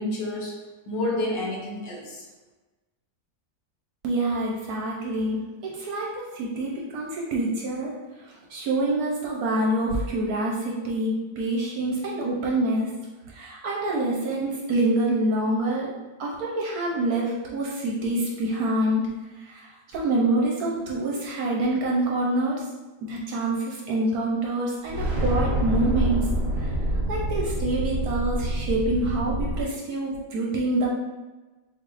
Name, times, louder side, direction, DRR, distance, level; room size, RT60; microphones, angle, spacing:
voice 1, 0.0-2.2, left 1 dB, 80° left, -1 dB, 1.5 m, -30 dB
voice 2, 4.0-13.0 13.3-15.9 16.2-22.6 23.0-26.7 27.1-30.9, right 1 dB, 65° right, -3 dB, 1.0 m, -26 dB
sound 1, 24.8-29.6, right 1 dB, 35° right, 0.7 m, -26 dB
4.0 x 3.5 x 2.5 m, 1.2 s
omnidirectional pair, 1.9 m